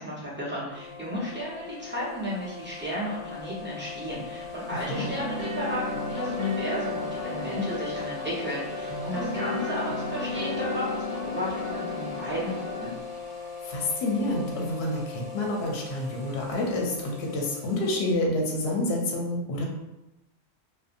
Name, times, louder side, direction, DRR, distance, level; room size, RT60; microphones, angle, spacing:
voice 1, 0.0-12.9, equal, 10° right, -9 dB, 0.7 m, -33 dB
sound 1, 0.7-18.2, left 4 dB, 80° right, 0.9 m, -40 dB
sound 2, 4.9-12.9, left 2 dB, 35° left, 0.5 m, -33 dB
voice 2, 13.7-19.6, left 1 dB, 70° left, -1 dB, 0.8 m, -28 dB
2.6 x 2.2 x 2.5 m, 0.94 s
omnidirectional pair, 1.2 m